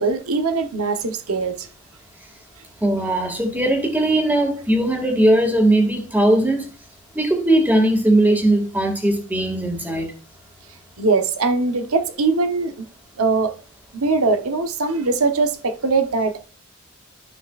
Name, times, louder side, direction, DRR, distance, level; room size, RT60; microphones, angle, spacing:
voice 1, 0.0-1.7 11.0-12.9 13.2-13.5 13.9-16.4, right 3 dB, 85° right, 1.0 m, -21 dB
voice 2, 2.8-6.6 7.2-10.1, right 1 dB, 10° right, 2.0 m, -19 dB
13.0 x 5.8 x 2.4 m
head